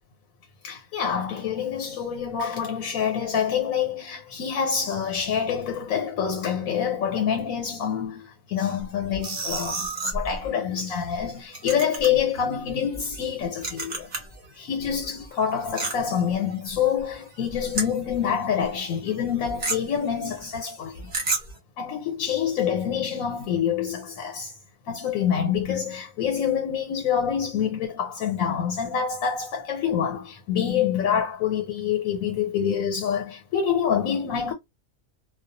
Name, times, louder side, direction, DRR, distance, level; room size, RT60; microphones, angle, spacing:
voice 1, 0.6-14.1 14.6-21.1 21.8-24.5 24.9-34.5, left 8 dB, 85° left, 1.1 m, -26 dB
sound 1, 8.8-14.5 14.7-18.4 18.7-18.8 19.1-21.6, right 2 dB, 35° right, 0.8 m, -33 dB
2.3 x 2.2 x 2.6 m
omnidirectional pair, 1.4 m